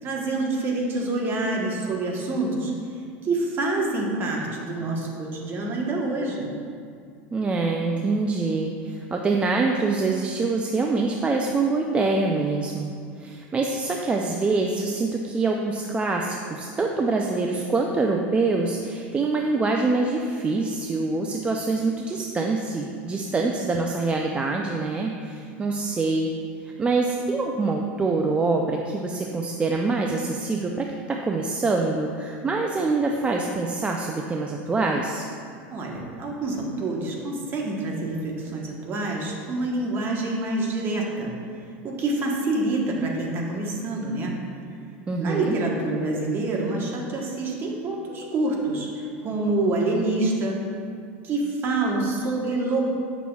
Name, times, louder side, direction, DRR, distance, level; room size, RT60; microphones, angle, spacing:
voice 1, 0.0-2.7 3.2-6.5 35.7-41.3 41.8-44.4 45.2-50.6 51.2-52.8, right 2 dB, 35° right, -1 dB, 1.1 m, -27 dB
voice 2, 7.3-12.9 13.2-26.3 26.8-35.2 45.1-45.6, right 3 dB, 20° right, 1 dB, 0.4 m, -25 dB
8.4 x 5.9 x 2.3 m, 2.2 s
supercardioid pair, 125°, 6 cm